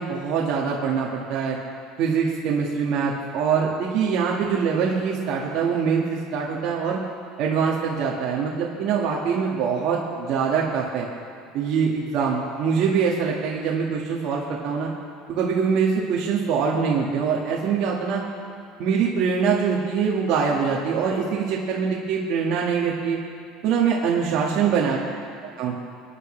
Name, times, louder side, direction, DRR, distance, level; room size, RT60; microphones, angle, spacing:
voice 1, 0.0-1.6 2.0-7.0 7.4-11.0 11.5-14.9 15.3-18.2 18.8-23.2 23.6-25.0 25.6-25.7, right 6 dB, 55° right, -4 dB, 1.7 m, -23 dB
27.5 x 9.8 x 3.3 m, 2.4 s
cardioid pair, 145°, 0 cm